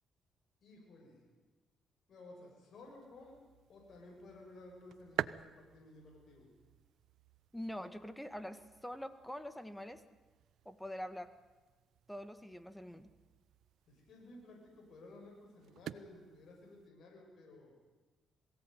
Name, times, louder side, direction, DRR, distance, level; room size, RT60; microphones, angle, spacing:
voice 1, 0.6-1.2 2.1-3.4 3.7-6.5 13.9-17.7, left 2 dB, 60° left, 0 dB, 7.0 m, -55 dB
sound 1, 2.7-16.9, right 11 dB, 75° right, 0.6 m, -49 dB
voice 2, 7.5-10.0 10.7-11.3 12.1-13.1, equal, 5° left, 11 dB, 1.8 m, -44 dB
22.0 x 17.0 x 9.3 m, 1.3 s
cardioid pair, 90°, 0 cm